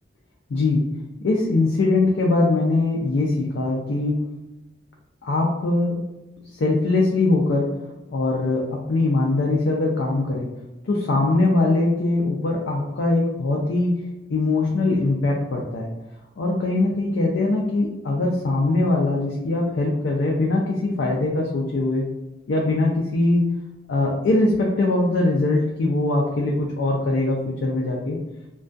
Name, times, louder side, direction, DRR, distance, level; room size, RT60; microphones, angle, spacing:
voice 1, 0.5-0.8 1.2-4.2 5.2-6.0 6.5-7.7 8.1-8.6 8.9-10.5 10.9-13.9 14.3-15.9 16.4-22.0 22.5-23.5 23.9-28.2, left 2 dB, 70° left, -2 dB, 0.4 m, -21 dB
2.3 x 2.2 x 2.5 m, 0.99 s
head